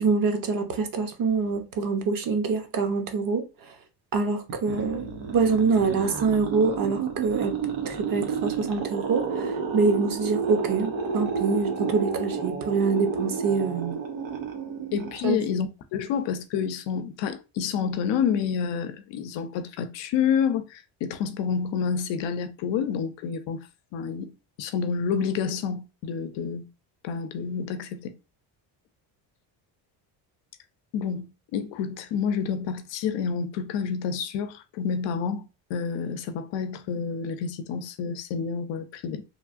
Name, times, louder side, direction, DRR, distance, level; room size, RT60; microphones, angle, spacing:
voice 1, 0.0-3.8 4.1-7.5 7.9-13.9 15.2-15.4, right 4 dB, 50° right, 0.8 m, -25 dB
sound 1, 4.5-15.6, right 5 dB, 90° right, 0.9 m, -31 dB
voice 2, 14.9-23.7 23.9-26.7 27.0-28.2 30.9-39.2, left 7 dB, 70° left, 0.6 m, -29 dB
3.2 x 2.3 x 2.5 m
cardioid pair, 110°, 45 cm